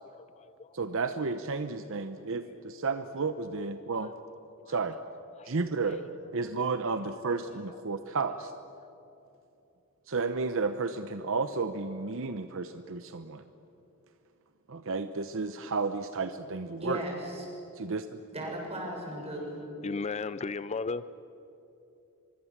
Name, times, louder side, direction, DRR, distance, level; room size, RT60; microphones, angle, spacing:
voice 1, 0.1-0.8 3.9-4.1 4.6-4.8 5.4-5.5 19.8-21.0, left 4 dB, 30° left, 15 dB, 0.4 m, -36 dB
voice 2, 0.7-4.1 4.7-5.0 5.5-6.0 6.3-8.5 10.1-13.4 14.7-17.0 17.8-18.2, right 4 dB, 65° right, 9 dB, 0.8 m, -32 dB
voice 3, 16.8-17.5 18.3-19.6, equal, 30° right, 0 dB, 6.5 m, -36 dB
24.5 x 23.5 x 7.4 m, 2.9 s
head